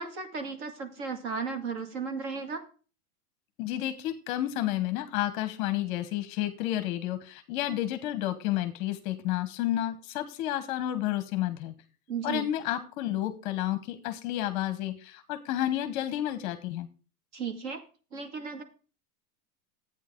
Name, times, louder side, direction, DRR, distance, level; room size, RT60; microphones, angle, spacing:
voice 1, 0.0-2.6 12.1-12.5 17.3-17.8 18.1-18.6, right 5 dB, 50° right, 5 dB, 2.2 m, -35 dB
voice 2, 3.6-11.7 12.2-16.9, left 13 dB, 30° left, 10 dB, 0.9 m, -31 dB
13.0 x 9.0 x 3.7 m, 0.37 s
supercardioid pair, 170°, 45 cm